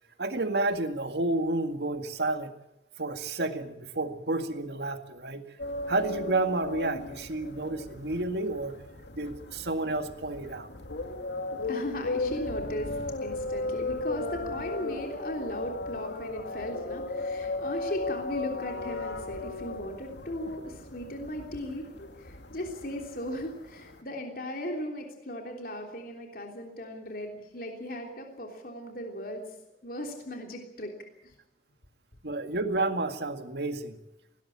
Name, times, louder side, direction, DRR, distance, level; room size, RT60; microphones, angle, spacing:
voice 1, 0.2-2.5 3.0-5.4 5.9-8.7 9.1-10.7 32.2-34.0, right 2 dB, 70° right, 7 dB, 2.0 m, -30 dB
sound 1, 5.6-24.0, left 2 dB, 85° left, 2.2 m, -36 dB
voice 2, 11.3-12.9 13.2-29.5 29.8-30.9 31.2-31.3, left 1 dB, 55° left, 2 dB, 3.4 m, -37 dB
20.0 x 18.0 x 8.8 m, 0.86 s
head